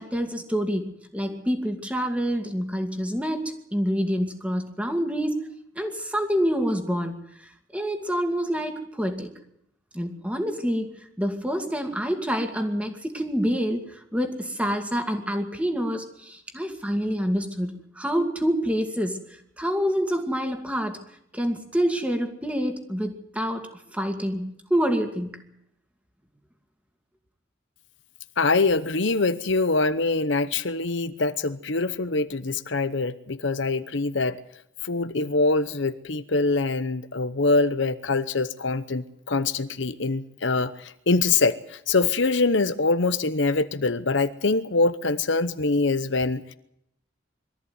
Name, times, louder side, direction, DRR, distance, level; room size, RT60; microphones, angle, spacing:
voice 1, 0.0-5.5 5.8-9.3 9.9-10.9 11.2-19.2 19.6-21.0 21.3-25.3, equal, 5° right, 6 dB, 2.3 m, -27 dB
voice 2, 28.4-34.4 34.8-46.5, left 3 dB, 60° left, 12 dB, 0.9 m, -24 dB
23.0 x 14.0 x 9.5 m, 0.76 s
head